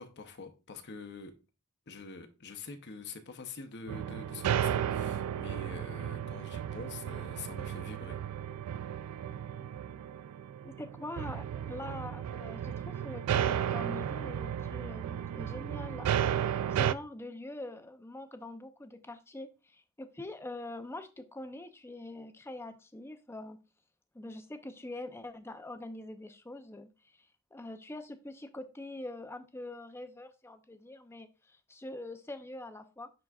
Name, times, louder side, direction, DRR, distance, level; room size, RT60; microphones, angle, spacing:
voice 1, 0.0-1.3 1.9-8.2, left 4 dB, 50° left, 0.8 m, -45 dB
sound 1, 3.9-16.9, right 9 dB, 85° right, 0.3 m, -34 dB
voice 2, 10.6-16.1 16.7-23.6 24.1-33.1, left 2 dB, 10° left, 0.5 m, -44 dB
10.5 x 3.9 x 2.3 m
head